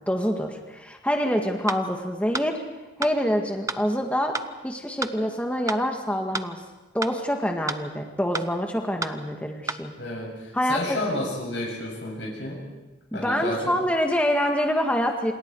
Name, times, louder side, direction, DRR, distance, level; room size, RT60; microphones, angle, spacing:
voice 1, 0.1-2.6 3.0-4.3 4.6-6.6 6.9-9.9 10.5-11.0 13.1-15.3, equal, 5° left, 2 dB, 1.9 m, -26 dB
sound 1, 1.7-1.8 2.3-2.5 3.0-3.2 3.7-3.8 4.3-4.5 5.0-5.2 5.7-5.8 6.3-6.5 7.0-7.2 7.7-7.8 8.3-8.5 9.0-9.2 9.7-9.8, right 4 dB, 15° right, 0.7 m, -30 dB
voice 2, 10.0-12.6 13.1-13.7, left 1 dB, 75° left, -3 dB, 7.9 m, -31 dB
27.5 x 27.5 x 4.8 m, 1.1 s
head